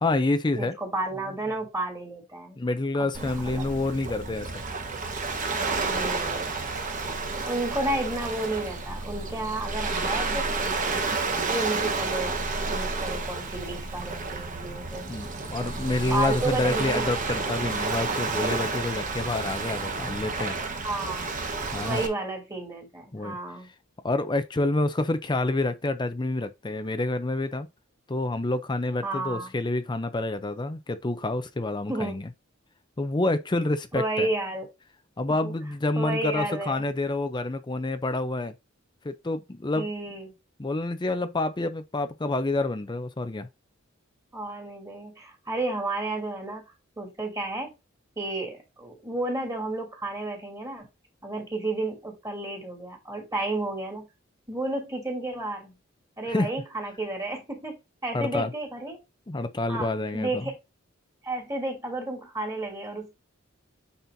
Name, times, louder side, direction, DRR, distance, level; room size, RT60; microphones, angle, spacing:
voice 1, 0.0-0.8 2.6-4.5 15.1-20.5 21.7-22.0 23.1-23.4 24.0-27.7 28.1-32.2 33.0-34.3 35.2-38.5 39.0-39.9 40.6-43.5 56.3-56.5 58.1-58.5 59.3-60.4, left 2 dB, 20° left, 0.5 m, -28 dB
voice 2, 0.6-2.6 3.2-3.7 5.9-6.5 7.5-11.0 11.5-15.1 16.1-17.1 20.8-21.3 21.8-23.7 29.0-29.6 31.9-32.2 33.9-34.7 35.4-35.5 36.0-36.8 39.8-40.3 44.3-46.6 47.0-47.7 48.2-50.9 51.2-54.1 54.5-55.7 56.2-59.0 59.7-60.6 61.2-63.2, right 2 dB, 15° right, 2.7 m, -32 dB
Waves surf, 3.1-22.1, right 3 dB, 40° right, 1.2 m, -30 dB
9.0 x 4.3 x 2.7 m
head